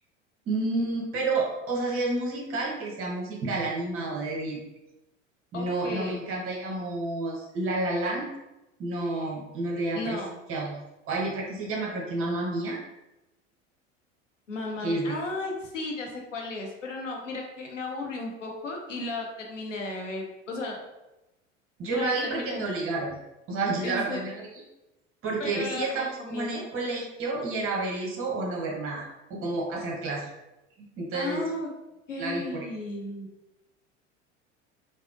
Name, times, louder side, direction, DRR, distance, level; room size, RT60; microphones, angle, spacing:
voice 1, 0.5-4.6 5.5-8.3 8.8-10.2 10.5-10.8 11.1-12.8 14.8-15.2 21.8-23.2 23.5-24.6 25.2-30.3 31.0-31.4 32.2-32.7, right 2 dB, 35° right, -1 dB, 1.0 m, -30 dB
voice 2, 5.5-6.2 9.9-10.3 14.5-20.8 21.9-22.7 23.8-24.3 25.4-26.5 31.1-31.7 32.1-33.3, left 2 dB, 85° left, 0 dB, 0.6 m, -35 dB
3.4 x 2.0 x 2.5 m, 0.96 s
figure-of-eight pair, 75°, 36 cm